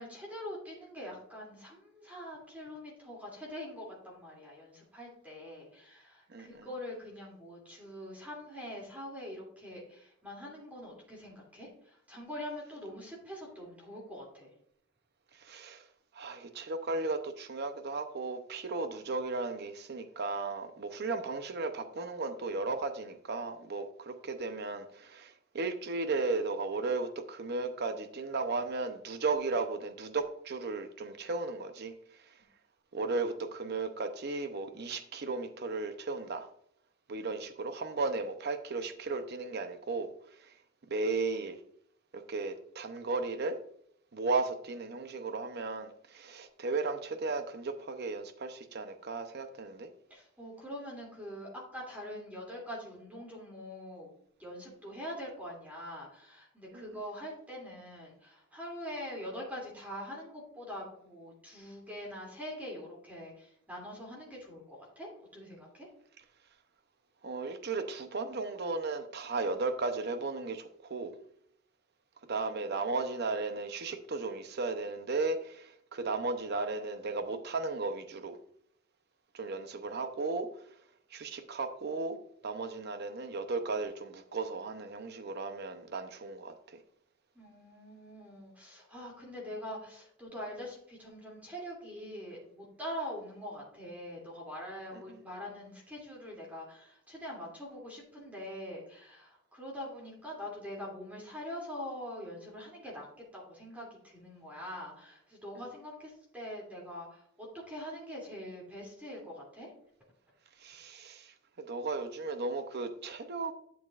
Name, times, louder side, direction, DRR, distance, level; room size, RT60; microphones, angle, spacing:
voice 1, 0.0-14.5 50.1-54.1 54.4-65.9 87.3-103.1 103.3-109.7, equal, 10° right, 2.7 m, -44 dB
voice 2, 6.3-6.7 15.3-15.8 16.1-31.9 32.9-36.5 37.1-40.1 40.4-40.5 40.9-41.6 42.1-43.6 44.1-49.9 56.7-56.8 67.2-71.1 72.3-78.4 79.3-80.5 81.1-82.2 82.4-86.8 94.9-95.2 110.6-113.5, right 3 dB, 55° right, 0.7 m, -35 dB
12.0 x 7.1 x 2.5 m
head